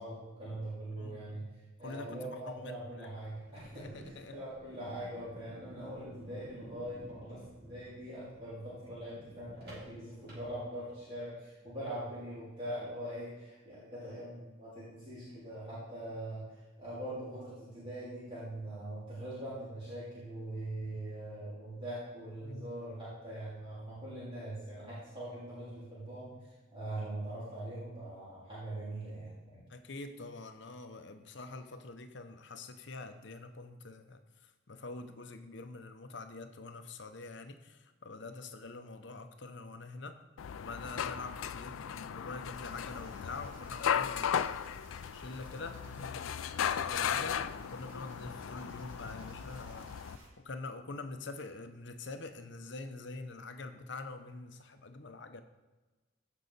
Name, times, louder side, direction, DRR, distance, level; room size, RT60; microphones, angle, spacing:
voice 1, 0.0-1.4 1.8-29.6, right 1 dB, 25° right, -11 dB, 3.5 m, -42 dB
voice 2, 1.0-1.5 1.8-3.1 3.7-4.4 22.4-22.8 29.7-40.2 40.6-44.6 45.1-46.4 46.8-55.4, left 3 dB, 60° left, 8 dB, 0.8 m, -45 dB
sound 1, 3.5-11.2, right 1 dB, 50° right, 2.8 m, -54 dB
sound 2, 40.4-50.2, left 8 dB, 85° left, 0.4 m, -36 dB
sound 3, 42.5-50.3, right 1 dB, 90° right, 3.3 m, -55 dB
16.0 x 5.6 x 4.1 m, 1.2 s
head